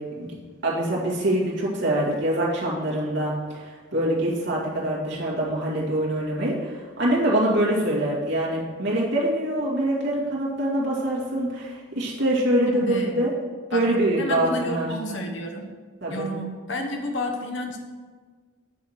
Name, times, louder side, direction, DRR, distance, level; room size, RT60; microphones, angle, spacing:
voice 1, 0.6-13.3 13.7-14.9 16.0-16.3, right 1 dB, 60° right, -5 dB, 2.4 m, -24 dB
voice 2, 12.7-13.2 13.7-13.9 14.2-15.7 16.1-17.8, left 1 dB, 65° left, 3 dB, 1.2 m, -30 dB
9.4 x 4.9 x 6.0 m, 1.5 s
head